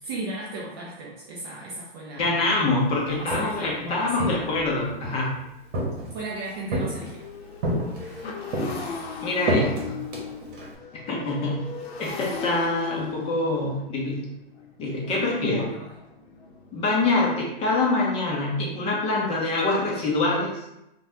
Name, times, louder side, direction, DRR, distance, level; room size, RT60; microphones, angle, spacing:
voice 1, 0.0-2.4 3.1-4.5 6.1-7.2 15.4-15.9, right 2 dB, 25° right, -4 dB, 0.4 m, -36 dB
voice 2, 2.2-5.3 9.2-10.0 11.1-11.6 12.0-14.2 14.8-15.6 16.7-20.5, left 2 dB, 20° left, -3 dB, 0.6 m, -25 dB
Walk footsteps, 3.1-3.7 4.2-5.2 5.7-6.3 6.7-7.2 7.6-8.2 8.5-10.7, right 1 dB, 55° right, 1.0 m, -28 dB
Motorcycle, 5.5-17.1, left 5 dB, 80° left, 0.7 m, -38 dB
3.2 x 2.2 x 2.6 m, 0.88 s
hypercardioid pair, 130°, 31 cm